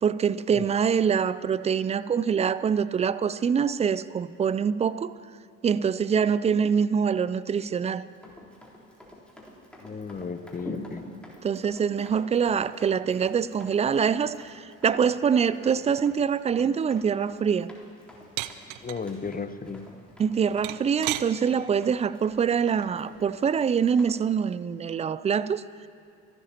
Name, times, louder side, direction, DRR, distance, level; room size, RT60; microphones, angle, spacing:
voice 1, 0.0-5.1 5.6-8.0 11.4-17.7 20.2-25.6, right 7 dB, 20° right, 16 dB, 0.3 m, -25 dB
Run, 8.1-24.2, left 1 dB, ahead, 3.7 m, -47 dB
voice 2, 9.8-11.0 18.8-19.9, left 5 dB, 20° left, 11 dB, 0.9 m, -34 dB
sound 1, 18.4-19.0 20.6-21.3 22.8-23.1, right 17 dB, 65° right, 0.6 m, -32 dB
27.0 x 12.5 x 2.9 m, 2.6 s
hypercardioid pair, 55°, 42 cm